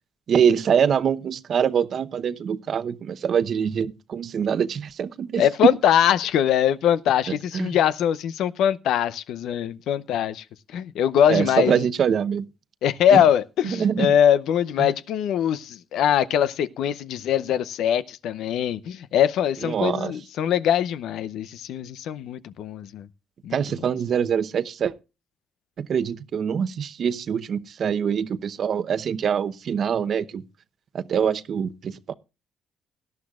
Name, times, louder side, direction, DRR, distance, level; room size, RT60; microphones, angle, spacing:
voice 1, 0.3-5.5 7.5-7.7 11.3-12.5 13.1-13.2 13.6-14.1 14.8-14.9 19.6-20.1 23.5-24.9 25.8-30.4 30.9-32.1, right 7 dB, 60° right, 0.8 m, -24 dB
voice 2, 5.4-10.4 10.7-11.8 12.8-23.1 23.4-23.6, left 9 dB, 85° left, 0.6 m, -22 dB
18.0 x 11.5 x 2.4 m
cardioid pair, 90°, 0 cm